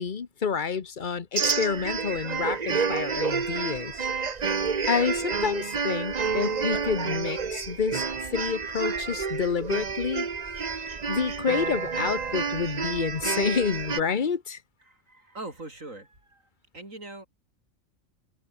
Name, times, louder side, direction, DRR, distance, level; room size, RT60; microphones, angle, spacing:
voice 1, 0.0-4.1 4.9-10.3 10.9-14.6, left 6 dB, 40° left, 1.2 m, -29 dB
sound 1, 1.4-14.0, right 5 dB, 35° right, 1.0 m, -29 dB
voice 2, 14.8-17.3, right 2 dB, 85° right, 6.1 m, -42 dB
omnidirectional pair, 1.3 m